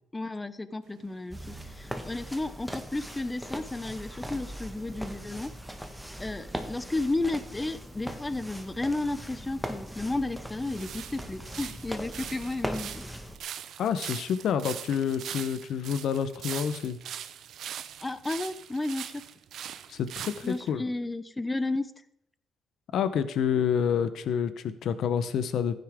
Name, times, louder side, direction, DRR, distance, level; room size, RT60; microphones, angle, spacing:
voice 1, 0.1-5.5 6.2-13.0 18.0-19.2 20.4-21.9, left 2 dB, 15° left, 14 dB, 0.8 m, -33 dB
sound 1, 0.8-6.9 8.6-8.7 9.5-20.7, right 9 dB, 75° right, 0.7 m, -43 dB
sound 2, 1.3-13.4, equal, ahead, 1.5 m, -40 dB
voice 2, 13.8-17.0 19.9-20.8 22.9-25.8, left 8 dB, 70° left, 13 dB, 0.9 m, -28 dB
14.5 x 9.4 x 3.7 m, 0.78 s
cardioid pair, 90°, 0 cm